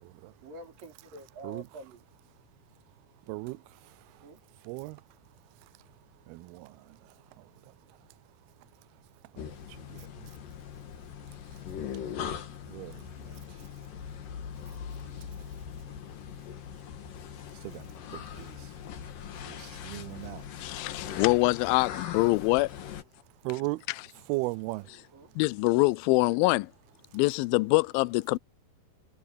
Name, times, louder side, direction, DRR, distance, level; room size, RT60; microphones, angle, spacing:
voice 1, 0.4-2.0 4.2-4.4 24.8-25.3, right 2 dB, 60° right, 6.9 m, -47 dB
voice 2, 3.3-3.6 4.7-5.0 6.3-6.7 9.9-10.0 12.7-13.0 17.6-17.8 18.1-18.6 19.5-20.4 23.4-23.8 24.3-24.9, right 22 dB, 85° right, 2.5 m, -35 dB
sound 1, 9.4-23.0, left 8 dB, 65° left, 3.2 m, -41 dB
voice 3, 20.6-22.7 23.9-24.1 25.4-26.7 27.1-28.4, left 23 dB, 80° left, 2.2 m, -25 dB
omnidirectional pair, 4.4 m